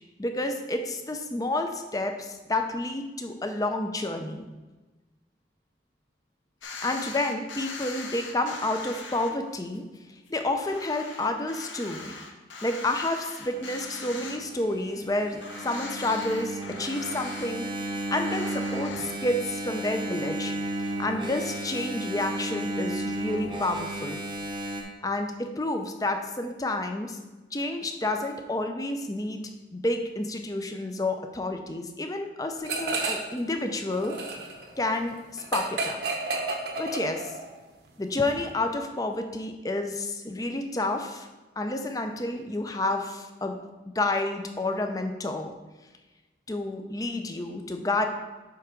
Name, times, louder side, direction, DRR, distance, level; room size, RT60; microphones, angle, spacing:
voice 1, 0.2-4.4 6.8-9.8 10.3-12.1 12.6-24.2 24.6-24.7 25.0-27.2 27.5-29.4 29.7-34.2 34.8-36.0 36.8-37.3 38.0-41.3 41.6-43.6 43.9-45.5 46.5-48.1, left 2 dB, 20° left, 5 dB, 0.5 m, -30 dB
sound 1, 6.6-9.3 9.8-9.9 10.3-10.4 10.6-14.7 15.0-15.1 15.4-17.5 18.2-19.0, left 3 dB, 90° left, 0.9 m, -41 dB
Engine, 13.4-24.8, right 1 dB, 25° right, 0.7 m, -34 dB
sound 2, 32.6-33.4 33.7-37.5, right 3 dB, 60° right, 0.9 m, -31 dB
7.7 x 3.5 x 5.1 m, 1.2 s
head